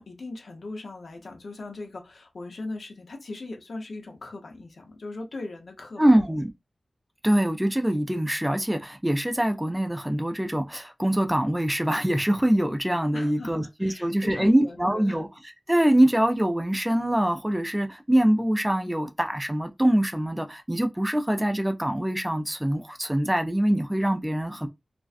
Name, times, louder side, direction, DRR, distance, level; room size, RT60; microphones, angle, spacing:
voice 1, 0.0-6.4 13.1-15.2, left 2 dB, 75° left, 0.7 m, -39 dB
voice 2, 6.0-6.5 7.2-15.3 15.7-24.7, right 1 dB, 10° right, 0.4 m, -24 dB
2.4 x 2.1 x 2.4 m
wide cardioid pair, 90°, 0 cm